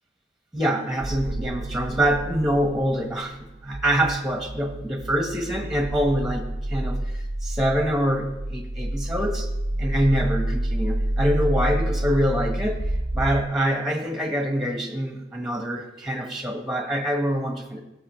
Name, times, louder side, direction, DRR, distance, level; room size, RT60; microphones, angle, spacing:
voice 1, 0.5-3.4 3.6-9.5 9.8-12.8 13.1-17.8, equal, ahead, 2 dB, 1.3 m, -25 dB
sound 1, 1.0-13.4, right 1 dB, 25° right, 0.7 m, -29 dB
17.5 x 7.0 x 3.2 m, 0.94 s
head